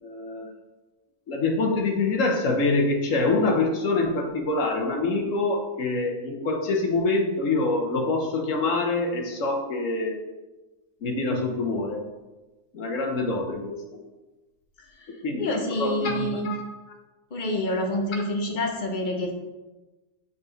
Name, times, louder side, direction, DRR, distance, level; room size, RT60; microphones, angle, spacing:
voice 1, 0.0-0.5 1.3-10.2 11.0-12.1 12.7-13.7 15.2-16.6, left 3 dB, 65° left, 2 dB, 1.3 m, -25 dB
voice 2, 15.4-16.5 17.3-19.3, left 1 dB, 40° left, 2 dB, 0.9 m, -27 dB
6.5 x 4.3 x 3.9 m, 1.1 s
omnidirectional pair, 1.5 m